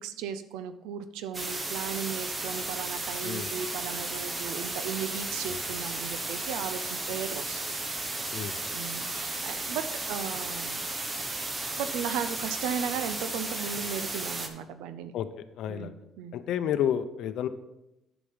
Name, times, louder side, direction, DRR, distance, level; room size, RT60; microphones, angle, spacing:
voice 1, 0.0-7.8 8.7-10.8 11.8-15.1 15.7-16.3, right 8 dB, 90° right, 11 dB, 0.6 m, -36 dB
sound 1, 1.3-14.5, right 2 dB, 25° right, 1.3 m, -34 dB
voice 2, 15.1-15.9 16.3-17.5, left 9 dB, 70° left, 10 dB, 0.6 m, -30 dB
8.4 x 6.1 x 5.5 m, 0.91 s
cardioid pair, 95°, 0 cm